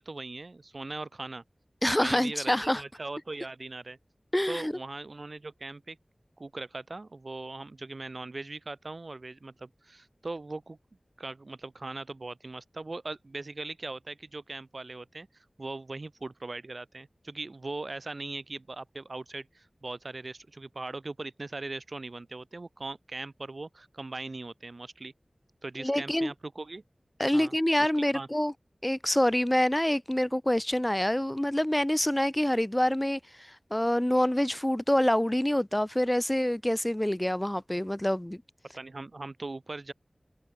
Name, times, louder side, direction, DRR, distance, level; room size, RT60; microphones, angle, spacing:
voice 1, 0.0-1.4 2.0-4.0 4.5-6.0 6.4-10.8 11.2-25.1 25.6-26.8 27.3-28.3 38.7-39.9, right 2 dB, 60° right, 5.1 m, -40 dB
voice 2, 1.8-2.8 4.3-4.7 25.8-26.3 27.2-28.5 28.8-38.4, left 1 dB, 15° left, 3.7 m, -26 dB
wide cardioid pair, 55°, 0 cm